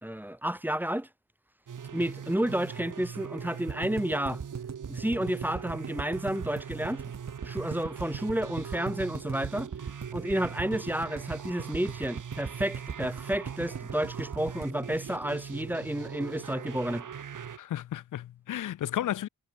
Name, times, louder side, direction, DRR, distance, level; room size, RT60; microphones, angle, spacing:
voice 1, 0.0-1.1 1.9-4.4 4.9-7.0 7.4-9.7 10.1-17.1, right 1 dB, 5° right, 1.2 m, -31 dB
sound 1, 1.7-17.6, right 7 dB, 85° right, 2.7 m, -41 dB
sound 2, 3.7-15.8 16.1-16.2 16.4-16.5, right 6 dB, 60° right, 2.3 m, -39 dB
voice 2, 17.6-19.3, left 12 dB, 80° left, 0.5 m, -33 dB
wide cardioid pair, 90°, 31 cm